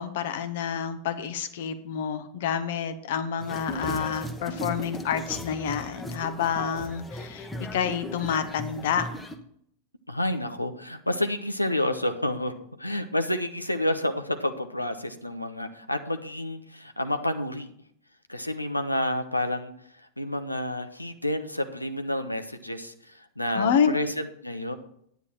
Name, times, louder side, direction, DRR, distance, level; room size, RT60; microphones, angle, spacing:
voice 1, 0.0-9.1 23.5-24.0, left 7 dB, 55° left, 10 dB, 1.1 m, -28 dB
sound 1, 3.4-9.4, left 1 dB, 10° left, 1.1 m, -37 dB
voice 2, 10.1-12.5 12.8-17.7 18.3-19.7 20.0-24.8, left 1 dB, 85° left, 8 dB, 0.9 m, -29 dB
9.9 x 9.3 x 4.3 m, 0.67 s
figure-of-eight pair, 90°, 0 cm